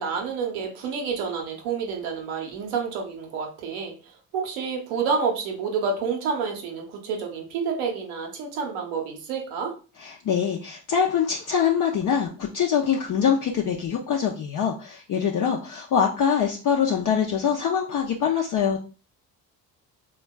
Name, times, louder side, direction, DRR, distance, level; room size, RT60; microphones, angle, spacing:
voice 1, 0.0-9.7, right 5 dB, 85° right, 1 dB, 0.8 m, -29 dB
voice 2, 10.0-18.8, left 7 dB, 50° left, -1 dB, 0.6 m, -24 dB
3.3 x 2.3 x 2.3 m, 0.35 s
hypercardioid pair, 55°, 42 cm